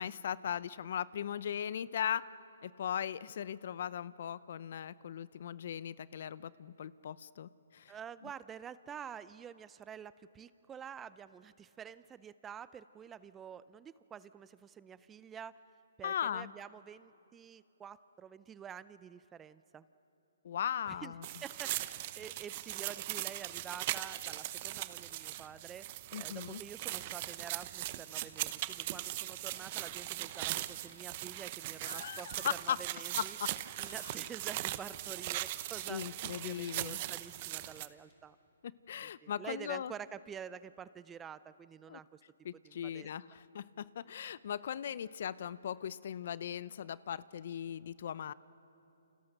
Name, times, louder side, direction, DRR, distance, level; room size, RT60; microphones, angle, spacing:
voice 1, 0.0-2.2 2.6-7.9 16.0-16.5 20.4-21.3 26.1-26.6 31.8-32.8 33.2-33.5 33.8-34.0 35.9-37.0 38.9-39.9 41.9-42.0 42.4-48.3, left 9 dB, 55° left, 19 dB, 0.6 m, -38 dB
voice 2, 7.9-15.6 16.0-19.9 20.9-21.1 21.4-33.4 33.8-38.4 39.0-42.2 42.6-43.2, right 8 dB, 15° right, 17 dB, 0.5 m, -48 dB
sound 1, 21.2-37.9, right 15 dB, 35° right, 0.9 m, -40 dB
29.0 x 28.0 x 6.6 m, 3.0 s
hypercardioid pair, 150°, 0 cm